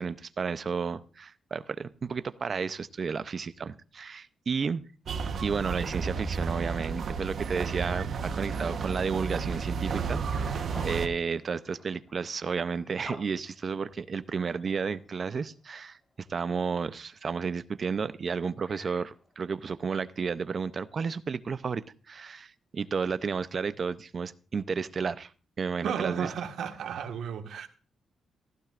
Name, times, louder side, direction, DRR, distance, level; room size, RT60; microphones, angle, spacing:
voice 1, 0.0-4.8 5.4-16.0 16.3-25.3 25.6-26.3 27.5-27.6, right 5 dB, 35° right, 0.6 m, -32 dB
sound 1, 5.1-11.1, right 5 dB, 50° right, 1.1 m, -32 dB
sound 2, 8.3-8.6 9.5-13.9 14.6-15.5 16.8-17.0 17.8-17.9 18.5-19.7, left 1 dB, 15° left, 1.6 m, -49 dB
voice 2, 25.8-27.7, right 7 dB, 80° right, 1.5 m, -34 dB
15.5 x 14.5 x 2.5 m
wide cardioid pair, 170°, 0 cm